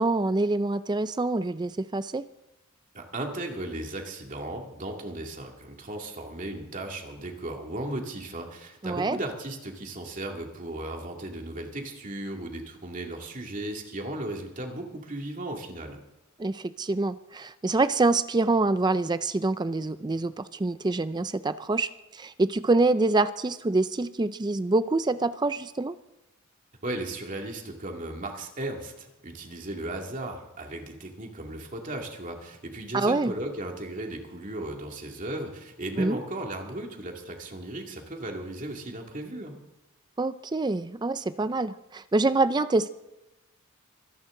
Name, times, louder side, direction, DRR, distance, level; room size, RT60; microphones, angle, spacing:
voice 1, 0.0-2.2 8.8-9.2 16.4-25.9 32.9-33.3 36.0-36.2 40.2-42.9, right 2 dB, 20° right, 13 dB, 0.4 m, -26 dB
voice 2, 2.9-16.0 26.8-39.5, right 1 dB, 35° right, 2 dB, 2.4 m, -36 dB
24.0 x 11.0 x 3.8 m, 0.97 s
head